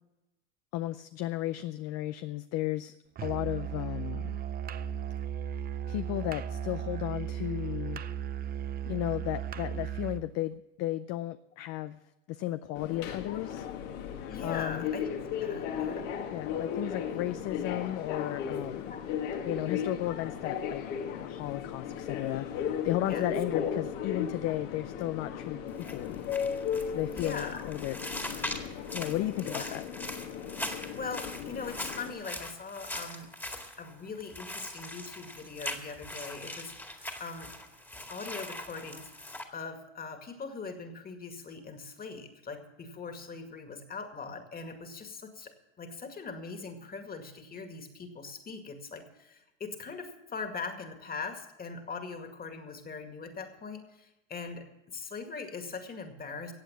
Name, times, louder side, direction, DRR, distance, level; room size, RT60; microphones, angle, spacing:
voice 1, 0.7-2.9 3.2-4.2 5.9-8.0 8.8-12.0 12.3-13.7 14.4-14.8 16.3-18.9 19.4-20.8 21.2-22.5 22.8-25.6 25.9-26.2 26.9-28.0 28.9-29.8, left 15 dB, 45° left, 12 dB, 0.5 m, -34 dB
Musical instrument, 3.2-10.3, right 9 dB, 25° right, 0.5 m, -36 dB
Subway metro underground, 12.7-32.1, left 7 dB, 70° left, 2.2 m, -36 dB
voice 2, 14.3-15.1 15.4-16.1 18.9-19.1 23.1-23.3 27.1-27.6 29.4-29.8 30.5-33.3 33.8-37.5 38.1-39.1 39.5-56.5, left 4 dB, 25° left, 6 dB, 2.1 m, -41 dB
sound 1, 25.7-39.4, left 1 dB, 5° left, 1.9 m, -41 dB
15.0 x 8.3 x 7.4 m, 0.95 s
supercardioid pair, 115°, 38 cm